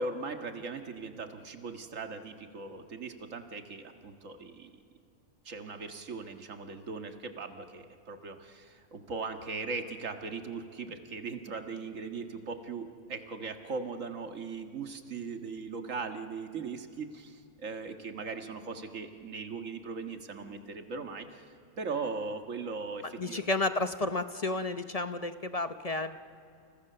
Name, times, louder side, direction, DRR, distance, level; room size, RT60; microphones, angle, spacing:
voice 1, 0.0-4.7 5.5-23.4, right 4 dB, 60° right, 6 dB, 2.0 m, -39 dB
voice 2, 23.2-26.2, left 2 dB, 35° left, 10 dB, 0.7 m, -31 dB
29.5 x 29.5 x 6.8 m, 2.6 s
omnidirectional pair, 1.5 m